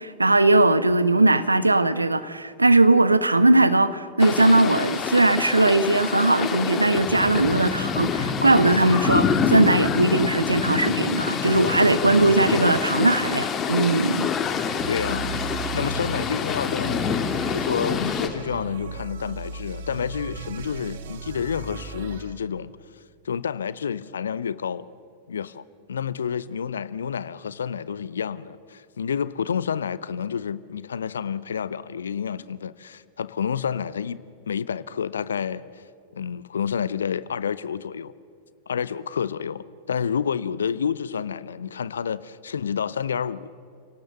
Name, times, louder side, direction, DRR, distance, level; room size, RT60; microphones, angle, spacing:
voice 1, 0.0-14.3, right 2 dB, 80° right, 1.0 m, -19 dB
sound 1, 4.2-18.3, left 6 dB, 25° left, 2.2 m, -26 dB
sound 2, 14.8-22.3, right 6 dB, 60° right, 1.7 m, -36 dB
voice 2, 14.9-17.0 17.5-22.7 23.2-24.9 25.3-25.6 25.9-35.6 36.1-38.1 38.7-43.5, left 7 dB, 70° left, 0.7 m, -29 dB
30.0 x 18.0 x 6.9 m
figure-of-eight pair, 90°, 0 cm